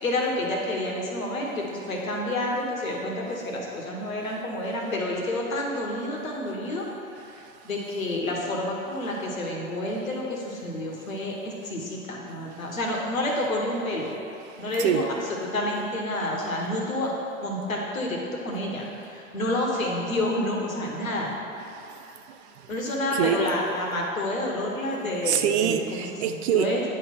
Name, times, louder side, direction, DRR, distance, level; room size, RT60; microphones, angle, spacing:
voice 1, 0.0-7.3 7.6-14.1 14.6-15.0 15.5-17.1 17.4-21.3 22.7-25.8 26.3-26.8, left 1 dB, 80° left, -1 dB, 1.5 m, -29 dB
voice 2, 21.7-22.7 23.1-23.4 25.2-26.7, right 10 dB, 55° right, 8 dB, 0.6 m, -26 dB
9.6 x 3.4 x 5.5 m, 2.7 s
figure-of-eight pair, 100°, 40 cm